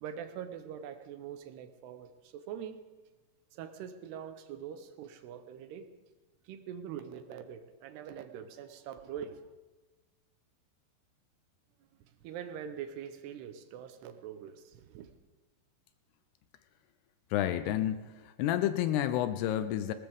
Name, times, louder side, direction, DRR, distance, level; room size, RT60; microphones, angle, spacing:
voice 1, 0.0-2.8 3.5-5.9 6.4-9.5 12.0-15.1, right 8 dB, 75° right, 9 dB, 2.8 m, -43 dB
voice 2, 17.3-19.9, left 12 dB, 80° left, 11 dB, 2.5 m, -30 dB
20.0 x 19.0 x 3.6 m, 1.2 s
omnidirectional pair, 5.1 m